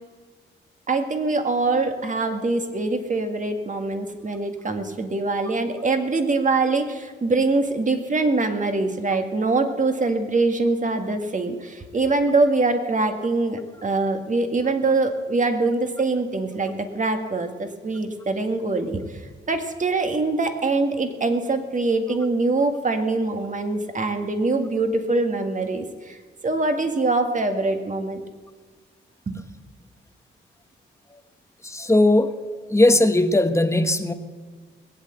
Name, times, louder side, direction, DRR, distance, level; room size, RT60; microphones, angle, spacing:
voice 1, 0.9-19.2 19.5-26.2 26.4-28.2 29.3-29.4, right 3 dB, 40° right, 6 dB, 2.0 m, -23 dB
voice 2, 31.6-32.3 32.7-34.1, left 1 dB, 15° left, 8 dB, 1.3 m, -18 dB
20.5 x 8.4 x 8.0 m, 1.5 s
cardioid pair, 75°, 21 cm